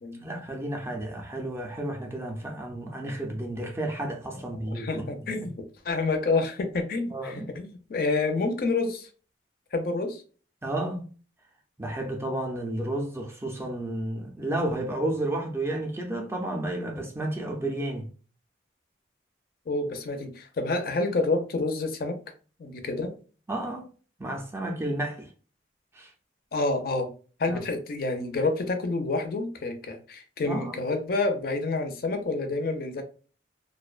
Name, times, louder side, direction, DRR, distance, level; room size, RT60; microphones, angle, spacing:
voice 1, 0.2-5.1 5.3-5.5 7.1-7.5 10.6-11.1 11.8-18.1 23.5-23.9 24.2-25.3 25.9-26.1 27.5-27.6 30.4-30.8, right 1 dB, 15° right, 0.4 m, -32 dB
voice 2, 4.7-9.1 9.7-10.2 19.7-22.2 22.6-23.1 26.5-27.1 27.4-33.0, left 3 dB, 50° left, 0.4 m, -28 dB
2.5 x 2.1 x 2.3 m
head